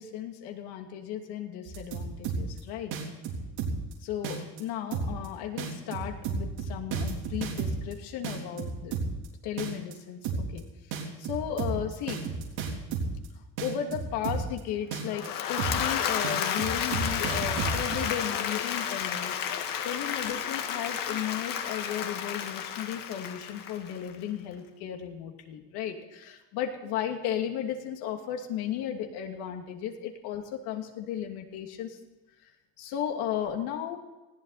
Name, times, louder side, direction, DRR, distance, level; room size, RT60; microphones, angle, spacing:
voice 1, 0.0-2.9 4.0-9.0 9.4-10.6 10.9-12.2 13.6-32.0 32.8-34.0, left 9 dB, 80° left, 3 dB, 2.7 m, -35 dB
sound 1, 1.7-2.6 2.9-3.9 4.2-4.6 4.9-5.3 5.6-7.9 8.2-9.3 9.6-9.9 10.2-10.6 10.9-13.3 13.6-14.6 14.9-15.3 15.6-15.9 16.2-18.0, right 5 dB, 80° right, 3.8 m, -32 dB
Applause / Crowd, 15.0-24.2, left 8 dB, 60° left, 1.8 m, -32 dB
20.0 x 15.5 x 4.2 m, 1.1 s
cardioid pair, 125°, 38 cm